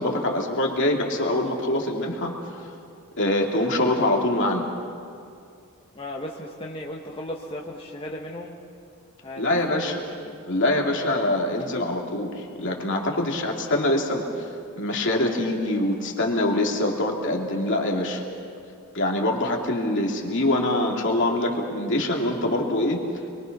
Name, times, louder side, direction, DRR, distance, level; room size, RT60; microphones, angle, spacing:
voice 1, 0.0-2.7 3.2-4.7 9.4-10.0 10.5-14.5 14.8-18.2 18.9-23.0, left 1 dB, 55° left, 0 dB, 2.8 m, -24 dB
voice 2, 5.9-8.5 9.2-9.4 9.7-9.9 10.2-10.4, left 1 dB, 25° left, -2 dB, 1.4 m, -36 dB
26.5 x 23.0 x 6.0 m, 2.4 s
head